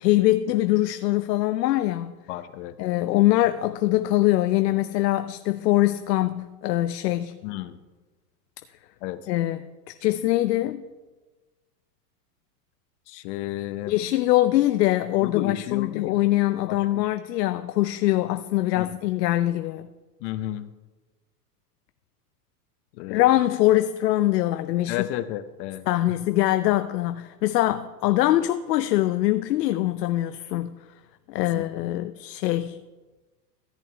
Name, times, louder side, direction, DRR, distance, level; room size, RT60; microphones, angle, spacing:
voice 1, 0.0-2.1 2.8-7.4 9.3-9.6 10.0-10.8 13.9-19.9 23.1-25.1 25.9-30.8 31.3-32.8, left 15 dB, 85° left, 0.6 m, -23 dB
voice 2, 2.3-2.7 7.4-7.8 9.0-9.2 13.1-13.9 15.2-16.2 16.7-17.1 18.7-19.0 20.2-20.7 23.0-23.3 24.9-25.9 31.4-31.7, left 13 dB, 45° left, 0.7 m, -33 dB
14.0 x 8.5 x 3.4 m
supercardioid pair, 135°, 48 cm